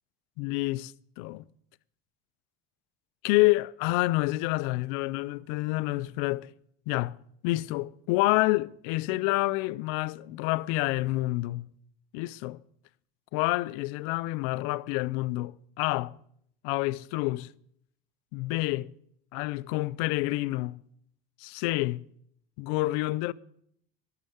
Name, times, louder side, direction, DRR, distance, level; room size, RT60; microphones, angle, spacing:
voice 1, 0.4-1.4 3.2-6.5 6.9-7.2 7.4-11.7 12.1-12.6 13.3-16.1 16.6-17.5 18.3-18.9 19.3-20.8 21.4-22.0 22.6-23.3, left 20 dB, 85° left, 0.4 m, -28 dB
12.5 x 6.6 x 7.0 m
cardioid pair, 125°, 20 cm